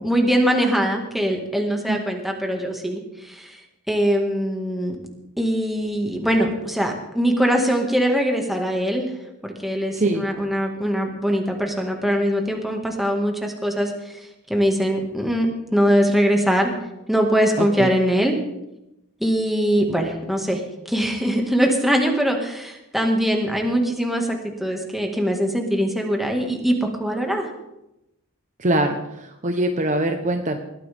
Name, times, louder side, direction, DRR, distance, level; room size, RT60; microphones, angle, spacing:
voice 1, 0.0-3.6 3.9-5.0 5.4-9.1 9.4-14.2 14.5-16.7 17.1-18.4 19.2-20.6 20.9-27.5, equal, ahead, 1 dB, 1.9 m, -22 dB
voice 2, 17.6-17.9 28.6-30.6, right 1 dB, 35° right, 4 dB, 1.0 m, -23 dB
20.5 x 13.5 x 3.6 m, 0.90 s
head